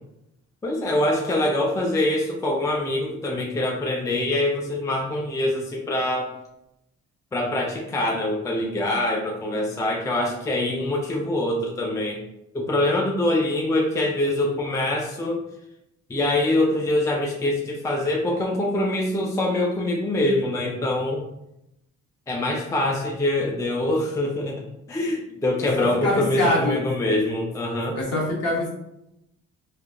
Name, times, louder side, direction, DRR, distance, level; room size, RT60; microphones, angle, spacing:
voice 1, 0.6-6.3 7.3-12.2 12.5-15.4 16.1-21.2 22.3-24.6 24.9-28.0, left 1 dB, 10° left, 0 dB, 0.4 m, -24 dB
voice 2, 25.8-26.8 27.9-28.7, left 1 dB, 55° left, -3 dB, 1.2 m, -24 dB
3.2 x 2.1 x 2.4 m, 0.84 s
cardioid pair, 90°, 30 cm